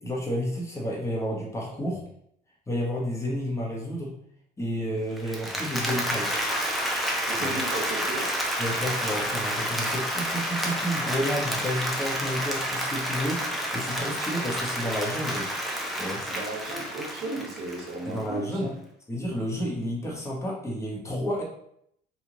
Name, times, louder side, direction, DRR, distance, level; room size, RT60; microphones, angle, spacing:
voice 1, 0.0-2.0 2.7-4.1 4.6-6.4 7.4-7.6 8.6-15.5 15.9-16.2 18.0-18.7 19.1-21.4, equal, 15° left, -2 dB, 1.0 m, -31 dB
Applause, 5.2-18.2, equal, ahead, 0.6 m, -30 dB
voice 2, 7.3-8.2 16.2-18.7, right 2 dB, 70° right, 0 dB, 1.0 m, -35 dB
3.1 x 2.4 x 3.7 m, 0.71 s
cardioid pair, 110°, 17 cm